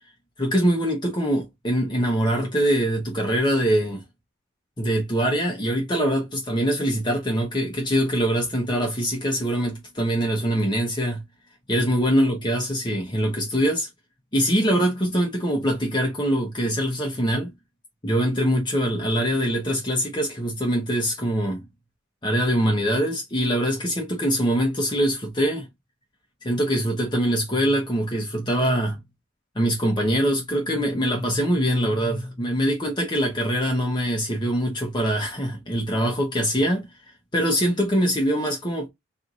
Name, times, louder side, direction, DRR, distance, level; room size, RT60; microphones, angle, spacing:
voice 1, 0.4-4.0 4.8-11.2 11.7-13.9 14.3-17.5 18.0-21.6 22.2-25.7 26.4-29.0 29.5-36.9 37.3-38.9, equal, 25° left, 1.1 m, -23 dB
4.6 x 3.3 x 2.6 m
head